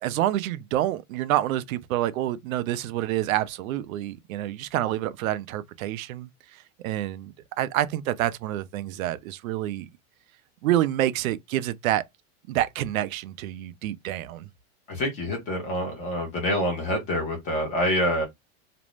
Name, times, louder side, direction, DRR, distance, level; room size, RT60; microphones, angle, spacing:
voice 1, 0.0-9.9 10.6-12.0 12.5-14.5, right 13 dB, 85° right, 0.5 m, -28 dB
voice 2, 14.9-18.2, equal, 20° left, 0.6 m, -26 dB
2.5 x 2.0 x 3.0 m
supercardioid pair, 170°, 40 cm